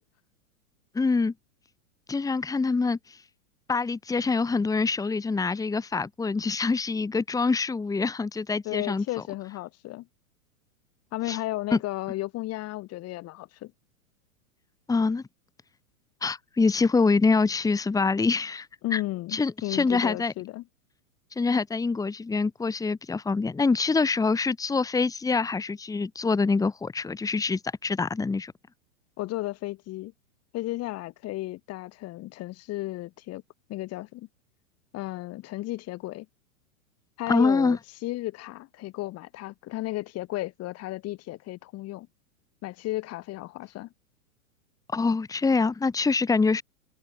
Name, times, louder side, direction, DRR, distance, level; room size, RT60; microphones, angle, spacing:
voice 1, 0.9-1.3 2.1-3.0 3.7-9.0 11.3-11.4 11.7-11.8 14.9-15.2 16.2-18.7 18.9-19.0 19.3-20.3 21.4-28.5 37.3-37.8 44.9-46.6, left 4 dB, 10° left, 2.0 m, -25 dB
voice 2, 8.6-10.1 11.1-13.7 18.8-20.6 29.2-30.1 30.5-33.4 33.7-34.3 34.9-36.3 37.2-42.1 42.6-43.9, left 17 dB, 35° left, 7.1 m, -34 dB
hypercardioid pair, 130°, 42 cm